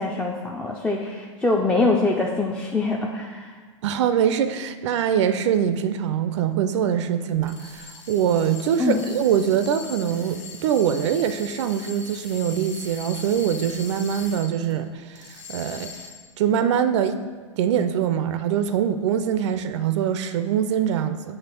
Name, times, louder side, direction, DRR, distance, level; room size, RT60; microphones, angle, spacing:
voice 1, 0.0-3.5 8.8-9.0, left 3 dB, 5° left, -1 dB, 0.3 m, -24 dB
voice 2, 3.8-15.9 16.4-17.2 17.6-21.4, right 9 dB, 65° right, 10 dB, 0.4 m, -23 dB
sound 1, 7.3-14.7 15.1-16.3, left 5 dB, 70° left, 1.6 m, -41 dB
7.8 x 3.2 x 4.4 m, 1.5 s
hypercardioid pair, 115°, 17 cm